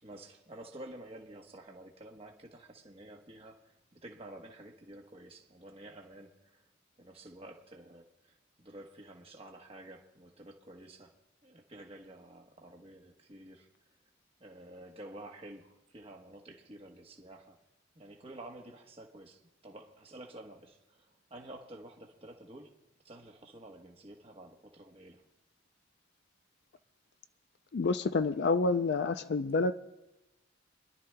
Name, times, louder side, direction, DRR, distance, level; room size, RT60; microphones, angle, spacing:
voice 1, 0.0-6.7 7.0-13.7 14.4-17.6 17.9-22.8 23.0-25.2, right 1 dB, 30° right, 1.1 m, -50 dB
voice 2, 27.7-29.7, left 3 dB, 55° left, 0.4 m, -28 dB
29.0 x 11.5 x 2.2 m
head